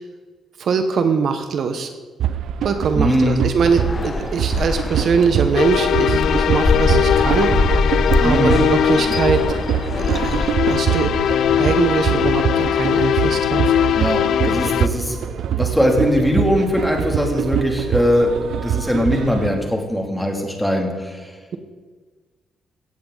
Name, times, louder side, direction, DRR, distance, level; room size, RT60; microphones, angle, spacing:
voice 1, 0.6-1.9 2.6-7.5 8.2-9.4 10.1-11.1 11.6-13.8, right 5 dB, 55° right, 7 dB, 1.2 m, -22 dB
sound 1, 2.2-19.5, right 9 dB, 75° right, 0.7 m, -24 dB
voice 2, 2.9-3.4 8.2-8.6 13.9-21.3, equal, ahead, 1 dB, 2.9 m, -20 dB
sound 2, 3.7-10.5, left 3 dB, 25° left, 0.7 m, -24 dB
sound 3, 5.5-14.9, left 9 dB, 75° left, 0.4 m, -20 dB
17.5 x 15.0 x 4.1 m, 1.4 s
cardioid pair, 145°, 0 cm